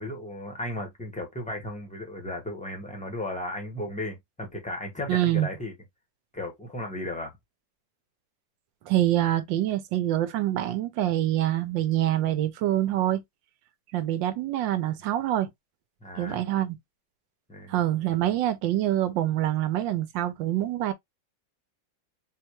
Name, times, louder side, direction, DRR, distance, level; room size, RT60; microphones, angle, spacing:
voice 1, 0.0-5.7 6.3-7.3 16.0-16.4 17.5-17.8, left 1 dB, 5° left, 0.6 m, -35 dB
voice 2, 5.1-5.5 8.9-13.2 13.9-15.5 16.2-16.8 17.7-20.9, right 13 dB, 80° right, 1.3 m, -25 dB
4.2 x 2.2 x 2.9 m
omnidirectional pair, 2.0 m